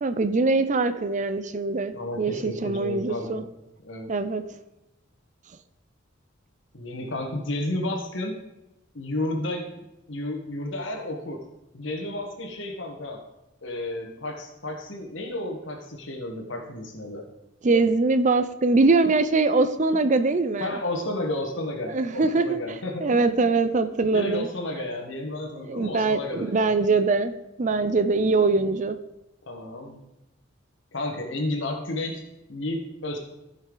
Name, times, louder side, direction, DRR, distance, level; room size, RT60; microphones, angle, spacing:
voice 1, 0.0-3.4 4.1-4.4 17.6-20.7 21.9-22.6 23.0-24.5 25.6-29.0, right 3 dB, 40° right, 11 dB, 0.5 m, -23 dB
voice 2, 1.9-3.5 3.8-4.1 6.7-8.4 8.9-11.5 11.7-13.2 13.6-17.3 20.6-23.5 24.1-26.7 29.5-30.1 30.9-32.2 32.5-33.2, left 1 dB, 70° left, 3 dB, 1.3 m, -32 dB
14.0 x 5.6 x 3.9 m, 0.93 s
head